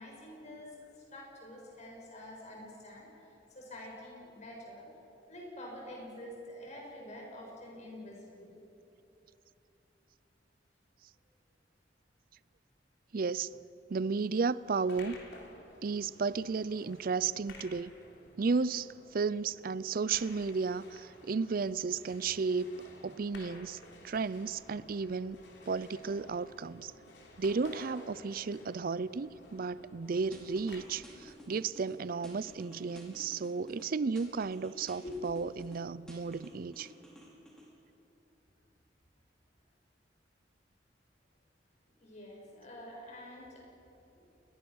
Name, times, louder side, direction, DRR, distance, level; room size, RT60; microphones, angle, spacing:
voice 1, 0.0-4.9 5.3-8.5 35.0-35.1 41.9-43.6, left 1 dB, 40° left, 6.8 m, -47 dB
voice 2, 13.1-13.6 13.9-15.2 15.8-17.9 18.4-23.8 24.0-25.4 25.7-26.9 27.4-36.9, right 4 dB, 55° right, 0.5 m, -33 dB
sound 1, 14.6-30.8, left 2 dB, 75° left, 3.4 m, -54 dB
sound 2, 30.3-31.9 32.2-33.9 34.2-35.8 36.1-37.7, equal, 5° left, 5.6 m, -53 dB
28.5 x 21.5 x 6.3 m
head